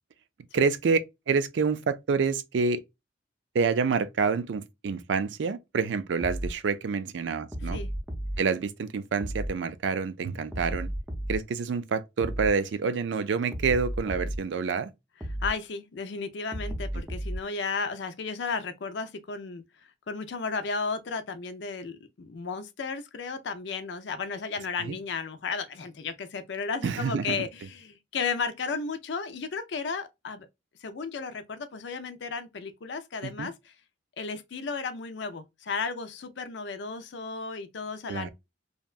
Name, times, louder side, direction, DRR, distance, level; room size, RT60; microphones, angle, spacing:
voice 1, 0.5-1.0 1.3-2.8 3.5-7.8 8.4-10.9 11.3-14.9 24.8-24.9 26.8-27.4 33.2-33.5 38.1-38.3, right 5 dB, 80° right, 0.4 m, -27 dB
sound 1, 6.2-6.5 7.5-8.4 9.2-9.5 10.5-11.4 12.2-12.5 13.5-14.4 15.2-15.5 16.5-17.4, right 1 dB, 10° right, 0.5 m, -33 dB
voice 2, 15.4-19.6 20.1-30.5 30.8-33.7 34.2-38.3, left 5 dB, 75° left, 0.5 m, -34 dB
2.8 x 2.2 x 2.3 m
head